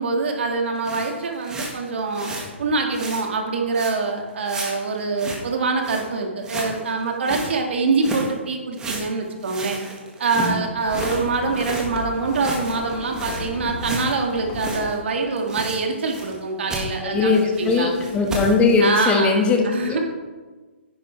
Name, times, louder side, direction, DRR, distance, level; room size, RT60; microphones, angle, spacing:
voice 1, 0.0-2.3 2.6-9.8 10.2-17.9 18.8-20.0, right 4 dB, 65° right, 2 dB, 2.0 m, -24 dB
sound 1, 0.7-2.5 2.9-3.2 3.7-4.1 4.5-5.5 5.8-6.1 6.4-7.5 8.0-8.3 8.7-11.9 12.2-15.0 15.2-16.4 16.7-16.9 17.3-18.8, right 2 dB, 10° right, 1.8 m, -33 dB
sound 2, 10.8-15.0, left 4 dB, 40° left, 1.7 m, -34 dB
voice 2, 17.0-20.0, left 4 dB, 15° left, 2 dB, 1.6 m, -20 dB
10.5 x 10.0 x 3.4 m, 1.3 s
hypercardioid pair, 135°, 7 cm